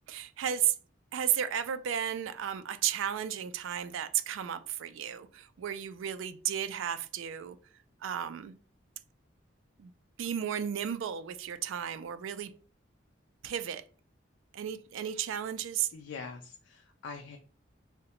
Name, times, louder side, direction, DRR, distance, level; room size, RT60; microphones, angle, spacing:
voice 1, 0.1-0.7 1.1-7.6 8.0-8.5 9.8-9.9 10.2-12.5 13.4-13.8 14.5-15.9, right 9 dB, 80° right, 0.3 m, -33 dB
voice 2, 15.9-17.4, left 4 dB, 70° left, 0.3 m, -44 dB
3.7 x 2.1 x 2.8 m
head